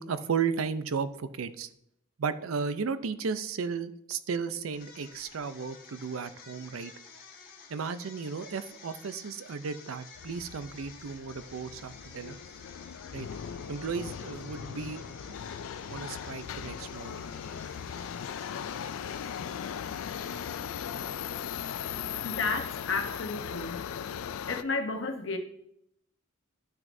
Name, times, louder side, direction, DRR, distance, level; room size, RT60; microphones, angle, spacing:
voice 1, 0.0-1.7 2.2-6.9 7.7-12.4 13.1-13.3 13.7-15.3 15.9-17.2, right 5 dB, 85° right, 13 dB, 0.5 m, -34 dB
sound 1, 4.7-21.0, left 5 dB, 45° left, 1.4 m, -51 dB
Subway metro underground, 10.2-24.6, left 8 dB, 85° left, 0.4 m, -38 dB
voice 2, 22.2-23.8 24.5-25.4, left 3 dB, 65° left, 4 dB, 0.9 m, -32 dB
12.5 x 6.0 x 2.6 m, 0.75 s
head